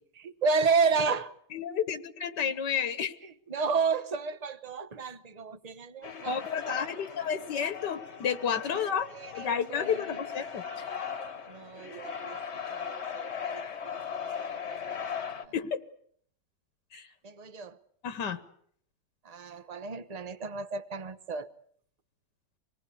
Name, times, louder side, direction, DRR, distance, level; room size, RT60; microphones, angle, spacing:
voice 1, 0.2-1.3 3.5-6.3 9.1-10.0 11.5-12.4 12.7-14.8 15.2-15.5 17.2-17.8 19.2-21.5, right 5 dB, 30° right, 0.9 m, -32 dB
voice 2, 1.5-3.1 6.3-10.9 15.5-15.8 16.9-17.1 18.0-18.4, left 7 dB, 85° left, 1.9 m, -31 dB
sound 1, 6.0-15.5, left 7 dB, 40° left, 1.5 m, -38 dB
26.5 x 19.5 x 8.4 m
omnidirectional pair, 1.8 m